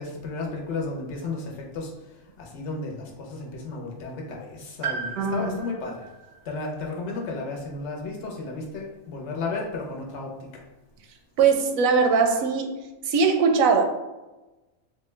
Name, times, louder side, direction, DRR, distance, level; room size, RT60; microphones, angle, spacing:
voice 1, 0.0-6.1 6.4-10.6, left 3 dB, 60° left, 0 dB, 1.0 m, -33 dB
Piano, 4.8-8.7 9.0-9.1 10.2-10.3, right 6 dB, 60° right, 0.5 m, -38 dB
voice 2, 5.2-5.5 11.4-12.7 13.0-13.9, right 5 dB, 85° right, 4 dB, 1.0 m, -20 dB
4.1 x 2.2 x 3.2 m, 1.1 s
omnidirectional pair, 1.4 m